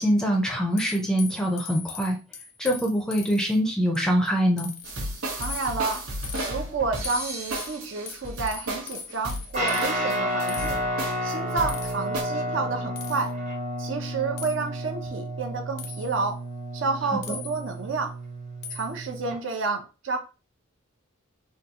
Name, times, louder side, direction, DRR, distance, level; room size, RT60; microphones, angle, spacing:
voice 1, 0.0-2.2 2.6-4.7 17.3-17.4, equal, 5° left, 0.5 m, -24 dB
sound 1, 0.8-3.6 3.9-4.3 4.6-5.0 5.4-6.5 7.0-9.9 10.5-10.7 11.7-12.1 13.0-13.3 14.4-14.6 15.8-16.2 17.2-17.8 18.6-19.0, left 6 dB, 50° left, 0.5 m, -40 dB
sound 2, 4.8-12.2, right 1 dB, 90° right, 1.0 m, -34 dB
voice 2, 5.4-6.0 6.5-10.8 11.2-13.3 13.8-16.4 16.7-18.2 18.7-20.2, right 4 dB, 60° right, 0.6 m, -30 dB
Guitar, 9.5-19.4, equal, 35° right, 0.9 m, -31 dB
3.7 x 2.3 x 2.8 m
head